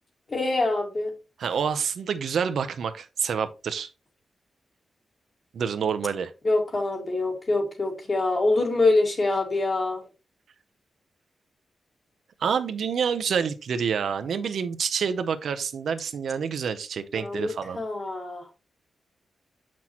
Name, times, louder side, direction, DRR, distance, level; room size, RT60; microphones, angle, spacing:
voice 1, 0.3-1.1 6.4-10.0 17.1-18.6, left 2 dB, 30° left, 1.7 m, -25 dB
voice 2, 1.4-3.9 5.5-6.3 12.4-17.8, right 6 dB, 70° right, 0.6 m, -28 dB
7.4 x 6.0 x 2.9 m
wide cardioid pair, 175°, 0 cm